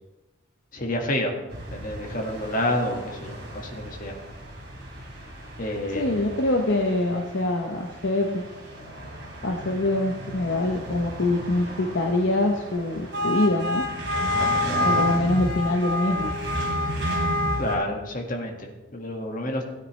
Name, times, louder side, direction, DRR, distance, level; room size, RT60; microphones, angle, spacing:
voice 1, 0.7-1.3 1.7-4.2 5.6-6.0 14.6-14.8 17.6-18.7 18.9-19.6, left 1 dB, 40° left, 1 dB, 1.7 m, -29 dB
sound 1, 1.5-17.7, left 1 dB, 55° right, 3.1 m, -30 dB
voice 2, 5.9-8.4 9.4-13.8 14.8-16.3, left 2 dB, 60° left, 2 dB, 0.8 m, -24 dB
16.5 x 9.5 x 3.2 m, 1.1 s
head